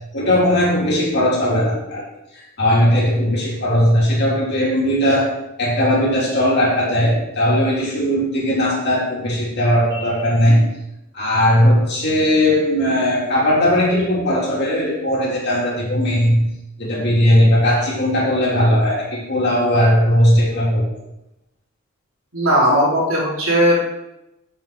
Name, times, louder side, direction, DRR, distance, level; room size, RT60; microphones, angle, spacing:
voice 1, 0.1-2.0 2.4-5.3 5.6-10.6 11.1-16.4 16.8-20.9, equal, 50° left, -5 dB, 3.1 m, -18 dB
voice 2, 22.3-23.8, equal, 75° right, -5 dB, 3.2 m, -17 dB
7.0 x 5.9 x 6.1 m, 0.89 s
head